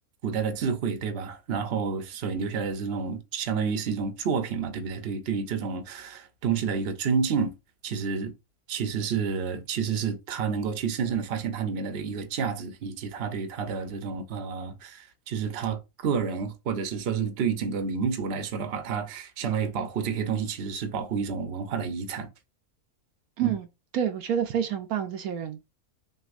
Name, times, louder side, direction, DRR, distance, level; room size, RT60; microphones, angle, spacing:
voice 1, 0.2-7.5 7.8-8.3 8.7-22.3 23.4-23.5, right 6 dB, 50° right, 0.9 m, -29 dB
voice 2, 23.4-23.7 23.9-25.6, right 9 dB, 80° right, 1.1 m, -28 dB
6.3 x 2.5 x 2.5 m
omnidirectional pair, 1.5 m